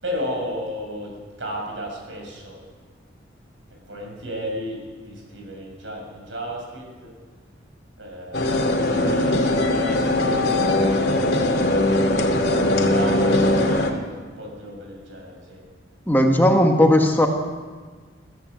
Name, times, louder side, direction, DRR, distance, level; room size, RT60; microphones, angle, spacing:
voice 1, 0.0-1.1 1.4-2.6 3.7-7.1 8.0-10.5 11.3-15.6, equal, 80° right, 1 dB, 7.1 m, -34 dB
sound 1, 8.3-13.9, left 1 dB, 55° left, 2.6 m, -20 dB
voice 2, 16.1-17.3, left 1 dB, 10° left, 2 dB, 1.7 m, -16 dB
23.5 x 14.0 x 8.1 m, 1.5 s
head